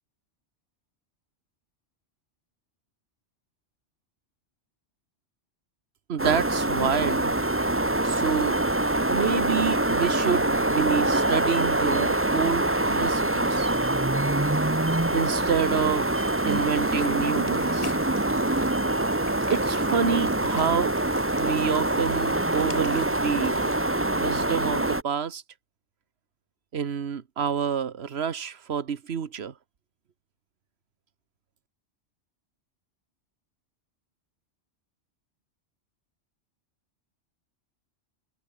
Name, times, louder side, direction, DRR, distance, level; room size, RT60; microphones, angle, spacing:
voice 1, 6.1-7.4 8.0-8.6 9.1-13.7 15.1-17.9 19.5-20.9 21.4-23.7 24.1-25.4 26.7-29.5, right 7 dB, 65° right, 1.4 m, -28 dB
sound 1, 6.2-25.0, right 1 dB, 10° right, 1.1 m, -25 dB
sound 2, 11.8-23.8, left 2 dB, 30° left, 2.1 m, -46 dB
omnidirectional pair, 1.2 m